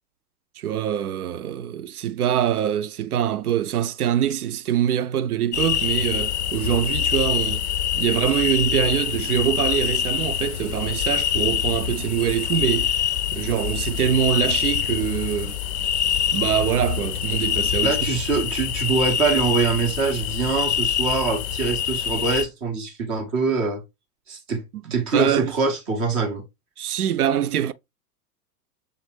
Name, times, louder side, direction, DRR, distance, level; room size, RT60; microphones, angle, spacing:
voice 1, 0.6-7.6 8.0-12.9 13.3-15.6 16.3-18.1 25.1-25.5 26.8-27.7, right 10 dB, 65° right, 0.5 m, -24 dB
sound 1, 5.5-22.4, left 9 dB, 45° left, 0.5 m, -25 dB
voice 2, 17.8-23.8 24.3-24.6 24.9-26.4, right 4 dB, 10° right, 0.4 m, -24 dB
6.5 x 2.5 x 3.2 m
figure-of-eight pair, 100°, 48 cm